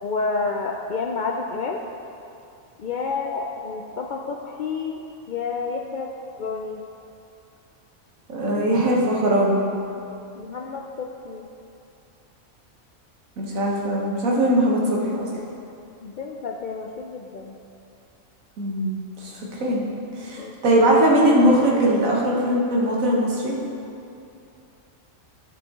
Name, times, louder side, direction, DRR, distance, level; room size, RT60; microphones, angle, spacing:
voice 1, 0.0-1.8 2.8-5.0 5.3-6.8 10.4-11.5 16.0-17.6 20.4-21.0, left 4 dB, 85° left, 0 dB, 0.4 m, -30 dB
voice 2, 8.3-9.7 13.4-15.3 18.6-19.3 19.6-19.8 20.2-23.5, right 1 dB, 85° right, -3 dB, 1.7 m, -20 dB
11.0 x 6.6 x 3.7 m, 2.6 s
omnidirectional pair, 1.4 m